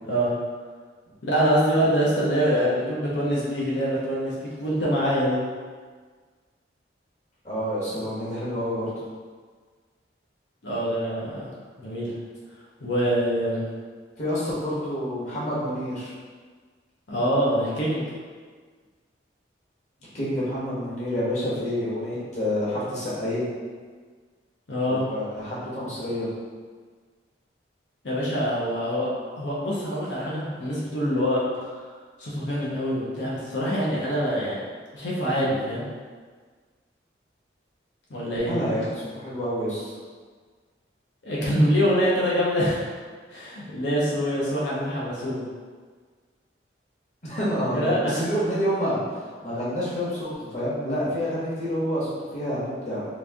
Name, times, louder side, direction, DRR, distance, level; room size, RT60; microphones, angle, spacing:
voice 1, 1.2-5.4 10.6-11.5 11.8-12.1 12.8-13.6 17.1-18.0 24.7-25.1 28.0-29.1 29.3-31.7 32.2-34.6 34.9-35.9 38.1-38.5 41.2-42.9 43.3-45.4 47.7-48.2, equal, 80° left, -6 dB, 0.8 m, -25 dB
voice 2, 7.4-8.9 14.2-16.1 20.1-23.5 24.8-26.3 38.5-39.9 47.2-49.0 49.4-53.0, equal, 40° left, -8 dB, 1.1 m, -28 dB
3.1 x 2.6 x 3.5 m, 1.5 s
head